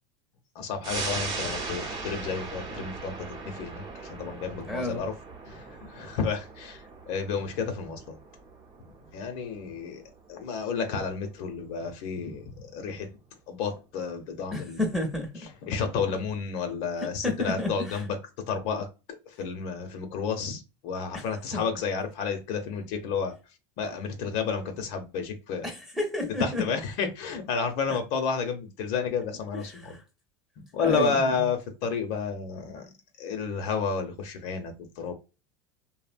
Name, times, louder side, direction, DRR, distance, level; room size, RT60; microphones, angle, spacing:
voice 1, 0.5-5.1 5.4-8.2 9.1-10.0 10.3-13.1 13.5-14.8 15.7-18.2 18.5-18.9 19.3-23.4 23.8-25.7 26.4-30.0 30.6-35.1, left 5 dB, 60° left, 0.7 m, -31 dB
sound 1, 0.8-11.8 12.2-12.3, right 3 dB, 30° right, 0.8 m, -39 dB
voice 2, 4.7-5.0 14.5-15.5 17.2-18.0 21.1-21.2 25.6-26.6 27.9-28.0 29.7-30.0 30.8-31.4, left 2 dB, 5° right, 0.8 m, -31 dB
2.8 x 2.1 x 2.5 m
supercardioid pair, 125°, 14 cm